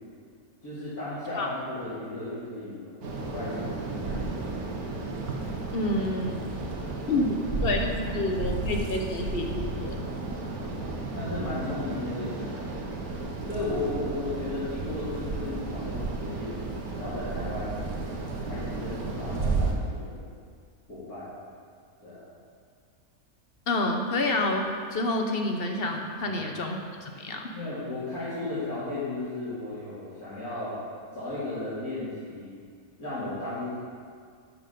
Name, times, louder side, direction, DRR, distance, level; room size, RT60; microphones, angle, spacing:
voice 1, 0.6-4.2 10.8-13.0 13.4-16.6 17.0-17.8 18.4-20.2 20.9-21.3 22.0-22.2 26.2-26.4 27.5-30.7 31.1-32.5 33.0-33.7, left 2 dB, 85° left, -13 dB, 3.4 m, -35 dB
sound 1, 3.0-19.7, right 3 dB, 80° right, 1.6 m, -33 dB
voice 2, 5.7-6.4 7.1-10.1 23.7-27.4, left 2 dB, 45° left, 3 dB, 1.0 m, -28 dB
11.5 x 6.2 x 5.3 m, 2.1 s
omnidirectional pair, 1.5 m